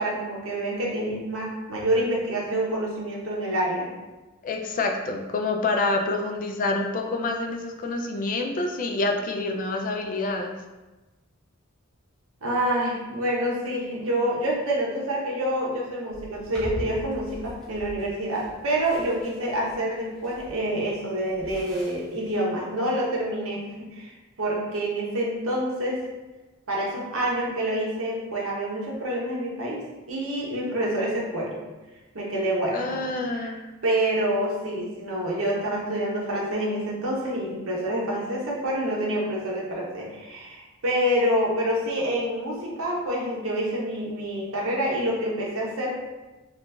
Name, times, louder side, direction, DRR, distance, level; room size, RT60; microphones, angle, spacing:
voice 1, 0.0-3.9 12.4-26.0 26.7-29.8 30.1-31.6 32.1-33.1 33.4-33.5 33.8-45.9, right 1 dB, 75° right, -3 dB, 0.9 m, -27 dB
voice 2, 4.4-10.6 32.7-33.6, left 2 dB, 40° left, 3 dB, 0.3 m, -27 dB
sound 1, 16.1-22.4, equal, 5° left, 0.6 m, -42 dB
2.9 x 2.4 x 3.4 m, 1.1 s
head